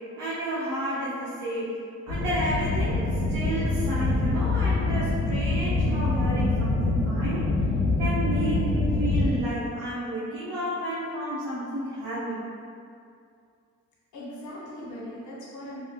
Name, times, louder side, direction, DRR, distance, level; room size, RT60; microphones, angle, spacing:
voice 1, 0.2-1.7 2.1-7.5 8.0-12.4, equal, 80° right, -11 dB, 1.0 m, -31 dB
sound 1, 2.1-9.3, left 2 dB, 65° left, 1.0 m, -25 dB
voice 2, 14.1-15.8, equal, 80° left, -7 dB, 1.3 m, -40 dB
3.5 x 2.9 x 2.7 m, 2.3 s
cardioid pair, 90°, 30 cm